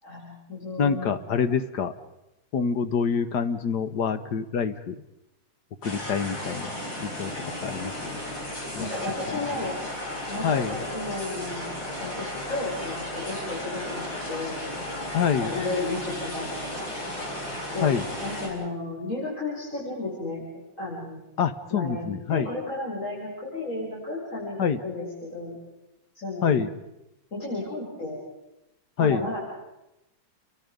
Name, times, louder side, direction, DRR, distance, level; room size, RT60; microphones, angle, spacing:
voice 1, 0.0-1.2 8.8-9.7 10.3-11.7 12.0-14.6 15.4-16.9 17.7-17.9 18.2-20.5 20.8-21.2 21.7-25.6 26.2-26.6 27.3-28.2 29.0-29.4, left 2 dB, 45° left, -7 dB, 6.9 m, -33 dB
voice 2, 0.8-1.9 2.5-5.0 5.8-6.7 7.0-7.3 7.6-8.2 8.7-8.9 10.4-10.7 15.1-15.5 17.8-18.1 21.4-22.5 24.6-24.8 26.4-26.7 29.0-29.3, left 6 dB, 65° left, 11 dB, 1.7 m, -26 dB
sound 1, 5.8-18.5, left 1 dB, 85° left, 6.1 m, -34 dB
29.5 x 23.5 x 5.2 m, 0.93 s
omnidirectional pair, 2.0 m